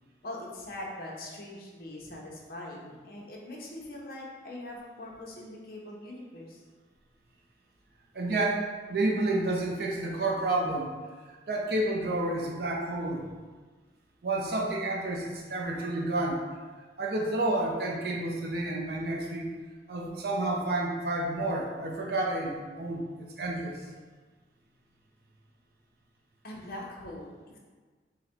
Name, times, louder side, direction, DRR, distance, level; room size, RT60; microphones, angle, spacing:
voice 1, 0.2-6.6 26.4-27.6, left 1 dB, 55° left, -2 dB, 0.8 m, -42 dB
voice 2, 8.1-8.6 8.9-10.9 11.3-13.3 14.2-16.4 17.0-19.5 19.9-23.9, right 2 dB, 60° right, -2 dB, 0.5 m, -30 dB
4.0 x 2.1 x 4.3 m, 1.4 s
head